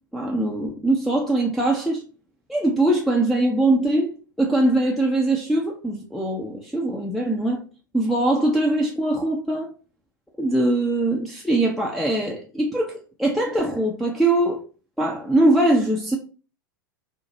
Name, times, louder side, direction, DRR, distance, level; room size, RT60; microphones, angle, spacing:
voice 1, 0.1-2.0 2.5-7.6 7.9-9.7 10.4-12.9 13.2-14.6 15.0-16.2, right 1 dB, ahead, 0.5 m, -22 dB
4.5 x 2.1 x 2.8 m
figure-of-eight pair, 90°, 11 cm